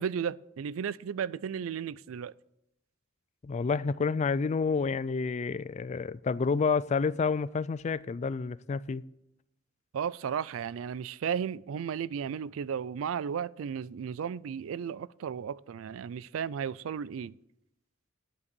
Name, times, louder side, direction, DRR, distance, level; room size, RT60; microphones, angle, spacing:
voice 1, 0.0-2.3 9.9-17.3, right 7 dB, 80° right, 0.3 m, -34 dB
voice 2, 3.4-9.0, left 5 dB, 35° left, 0.3 m, -29 dB
9.8 x 8.1 x 6.8 m
head